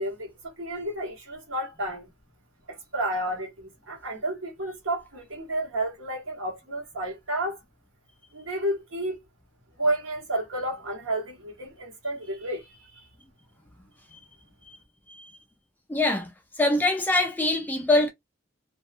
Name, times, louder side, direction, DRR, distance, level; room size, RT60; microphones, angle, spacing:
voice 1, 0.0-2.1 2.7-7.6 8.3-9.2 9.8-13.1, right 1 dB, 65° right, 1.2 m, -31 dB
voice 2, 15.9-16.3 16.6-18.1, left 2 dB, 10° left, 0.3 m, -24 dB
2.6 x 2.2 x 2.5 m
head